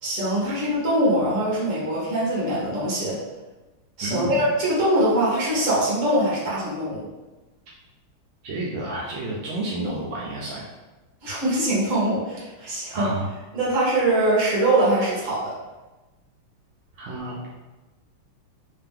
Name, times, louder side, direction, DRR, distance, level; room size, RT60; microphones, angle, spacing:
voice 1, 0.0-3.2 4.0-7.0 11.2-13.1 13.5-15.5, right 1 dB, 40° right, -6 dB, 1.5 m, -23 dB
voice 2, 4.0-4.4 8.4-10.7 12.9-13.3 17.0-17.4, right 2 dB, 75° right, -5 dB, 1.4 m, -30 dB
3.6 x 2.8 x 3.6 m, 1.1 s
omnidirectional pair, 2.3 m